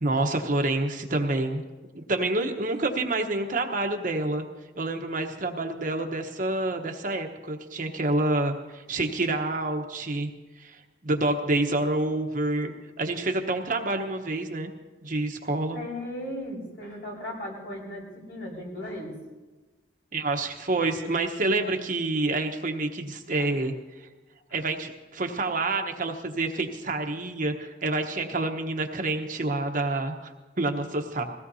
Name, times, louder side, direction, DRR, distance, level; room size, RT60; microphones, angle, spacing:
voice 1, 0.0-1.6 1.9-4.4 4.8-10.3 10.6-14.7 15.0-15.8 20.1-23.7 24.5-31.2, right 2 dB, 50° right, 4 dB, 1.1 m, -28 dB
voice 2, 15.7-19.2 23.4-23.7 24.5-24.6, left 1 dB, 70° left, -3 dB, 4.7 m, -37 dB
21.0 x 17.0 x 2.8 m, 1.2 s
head